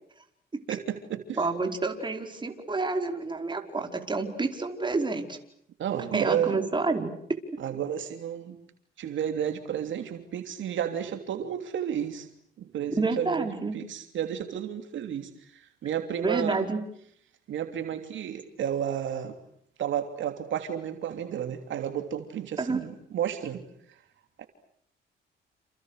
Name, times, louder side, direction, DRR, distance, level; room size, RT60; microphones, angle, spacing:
voice 1, 0.7-1.4 5.8-6.6 7.6-8.6 9.0-12.3 12.6-13.5 13.7-16.6 17.5-19.4 19.8-23.6 24.4-24.5, right 9 dB, 70° right, 6 dB, 3.1 m, -32 dB
voice 2, 1.4-5.4 6.1-7.1 7.5-7.6 12.9-13.7 16.2-16.8 22.6-22.8, right 3 dB, 25° right, 4 dB, 5.0 m, -29 dB
30.0 x 29.0 x 6.6 m, 0.68 s
cardioid pair, 90°, 20 cm